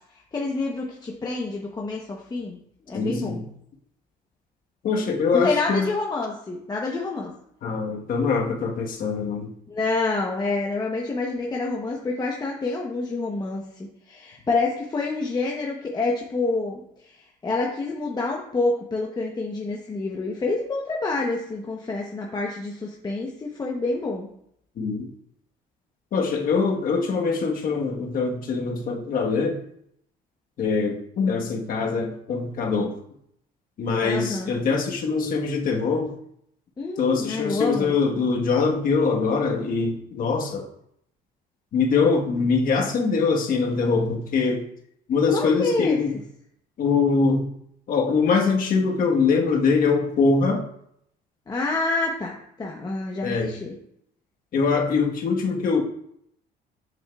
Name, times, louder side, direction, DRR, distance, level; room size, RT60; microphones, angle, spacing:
voice 1, 0.3-2.6 2.9-3.4 5.3-7.3 9.7-24.3 34.0-34.5 36.8-37.9 45.3-46.0 51.5-53.7, left 3 dB, 25° left, -1 dB, 0.8 m, -27 dB
voice 2, 2.9-3.4 4.8-5.9 7.6-9.5 24.8-25.1 26.1-29.6 30.6-33.0 33.8-36.1 37.0-40.7 41.7-44.6 45.1-46.2 46.8-47.5 47.9-50.7 53.2-53.5 54.5-55.8, left 4 dB, 55° left, 1 dB, 1.2 m, -23 dB
7.3 x 6.3 x 2.3 m, 0.72 s
cardioid pair, 110°, 17 cm